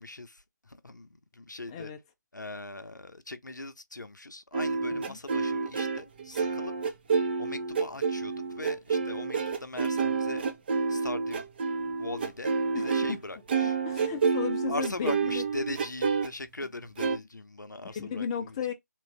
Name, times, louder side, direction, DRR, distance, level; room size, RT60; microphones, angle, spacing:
voice 1, 0.0-1.9 2.3-6.7 7.4-10.5 10.9-11.5 12.0-13.8 14.7-18.6, left 2 dB, 80° left, 0.6 m, -40 dB
voice 2, 1.7-2.0 4.9-5.2 12.7-13.2 13.6-15.4 17.9-18.7, left 7 dB, 20° left, 0.4 m, -35 dB
sound 1, 4.5-13.2 13.5-16.3 17.0-17.2, right 5 dB, 35° right, 0.5 m, -29 dB
3.0 x 2.5 x 3.1 m
figure-of-eight pair, 145°, 10 cm